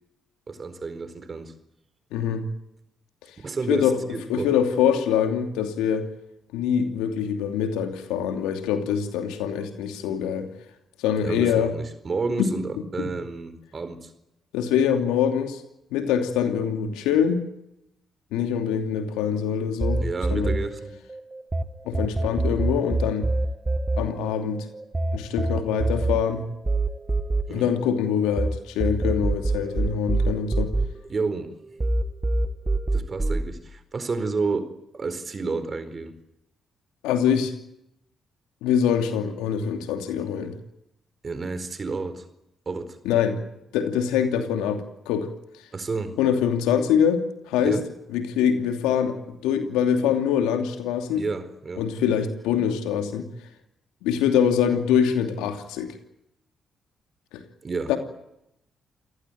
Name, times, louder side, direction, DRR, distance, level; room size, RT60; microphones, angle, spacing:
voice 1, 0.5-1.5 3.4-4.5 11.2-14.1 20.0-21.0 27.5-27.7 31.1-31.5 32.9-36.1 41.2-42.3 42.7-43.0 45.7-46.2 47.6-47.8 51.2-51.9 57.6-57.9, right 4 dB, 45° right, 11 dB, 4.4 m, -30 dB
voice 2, 2.1-2.5 3.7-4.0 4.3-6.1 6.5-10.5 11.0-11.7 12.4-12.5 13.0-13.1 14.5-15.6 15.9-17.4 18.3-20.0 20.3-20.6 21.9-23.3 24.0-24.6 25.1-26.4 27.5-30.7 37.0-37.5 38.6-40.5 43.0-43.4 43.7-45.3 46.2-47.8 48.1-51.2 51.8-53.3 54.0-55.9 57.9-58.0, left 8 dB, 80° left, 6 dB, 2.7 m, -24 dB
sound 1, 19.8-21.6 21.9-28.5 28.8-31.5 31.8-33.4, right 2 dB, 25° right, 2.1 m, -25 dB
28.5 x 18.0 x 9.3 m, 0.82 s
hypercardioid pair, 45°, 0 cm